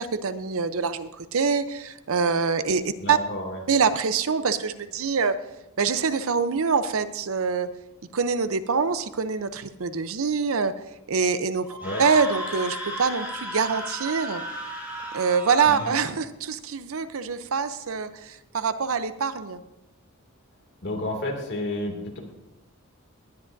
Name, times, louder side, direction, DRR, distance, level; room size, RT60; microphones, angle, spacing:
voice 1, 0.0-3.2 3.7-5.4 5.8-7.7 8.1-10.7 11.1-14.4 15.1-19.6, right 5 dB, 70° right, 12 dB, 0.6 m, -25 dB
voice 2, 3.0-3.6 11.8-12.0 15.6-15.9 20.8-22.2, left 1 dB, 55° left, 1 dB, 2.4 m, -31 dB
Screaming, 11.7-16.0, right 1 dB, 10° right, 4.1 m, -34 dB
19.0 x 10.5 x 2.6 m, 0.91 s
head